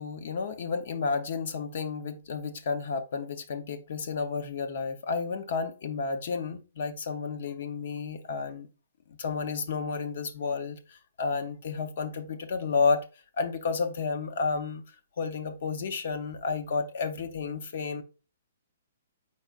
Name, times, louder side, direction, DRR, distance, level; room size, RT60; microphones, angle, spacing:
voice 1, 0.0-8.7 9.2-13.0 13.4-14.8 15.2-18.0, left 4 dB, 55° left, 0.6 m, -31 dB
4.3 x 4.2 x 2.4 m
hypercardioid pair, 165°, 0 cm